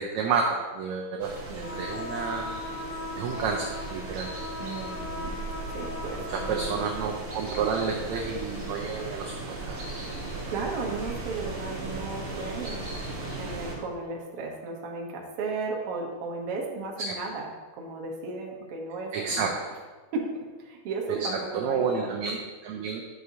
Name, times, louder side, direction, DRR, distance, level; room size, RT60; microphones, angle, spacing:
voice 1, 0.0-2.5 3.2-4.3 6.3-9.8 17.1-17.2 19.1-19.5 21.1-21.3 21.5-23.0, right 5 dB, 80° right, 0 dB, 1.7 m, -30 dB
sound 1, 1.2-13.7, right 2 dB, 40° right, 1.1 m, -37 dB
voice 2, 1.5-1.9 4.6-5.4 5.7-6.8 10.5-17.5 17.8-19.6 20.1-22.1, right 3 dB, 60° right, 0 dB, 1.6 m, -35 dB
sound 2, 1.6-7.0, left 2 dB, 65° left, 3.6 m, -38 dB
10.5 x 6.4 x 2.8 m, 1.4 s
omnidirectional pair, 3.9 m